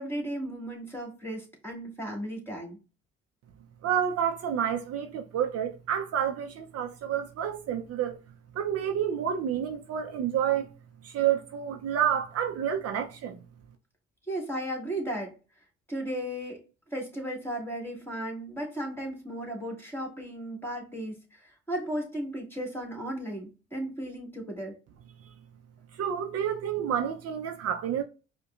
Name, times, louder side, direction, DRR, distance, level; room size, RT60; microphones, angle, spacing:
voice 1, 0.0-2.8 14.3-15.3 15.9-16.6 16.9-24.8, right 1 dB, 5° left, 1.7 m, -35 dB
voice 2, 3.8-8.2 8.5-10.7 11.0-13.4 25.9-28.0, right 9 dB, 55° right, 0.5 m, -29 dB
4.7 x 2.2 x 2.3 m
supercardioid pair, 70°, 30 cm